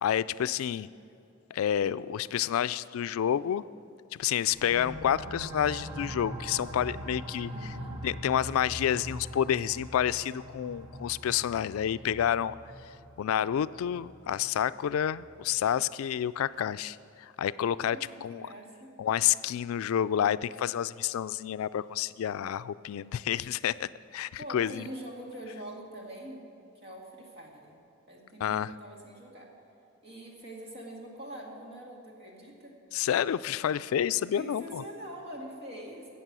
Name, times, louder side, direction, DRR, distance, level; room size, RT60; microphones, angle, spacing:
voice 1, 0.0-0.9 1.5-3.6 4.1-7.5 8.0-12.6 13.2-18.4 19.0-24.8 28.4-28.7 32.9-34.8, left 9 dB, 85° left, 17 dB, 0.3 m, -29 dB
sound 1, 4.5-15.9, equal, 15° right, 1.0 m, -42 dB
voice 2, 7.5-8.0 17.9-19.0 24.4-27.7 28.1-29.5 30.0-32.8 34.3-36.1, right 1 dB, 50° right, -1 dB, 2.1 m, -44 dB
17.0 x 7.2 x 6.1 m, 2.7 s
head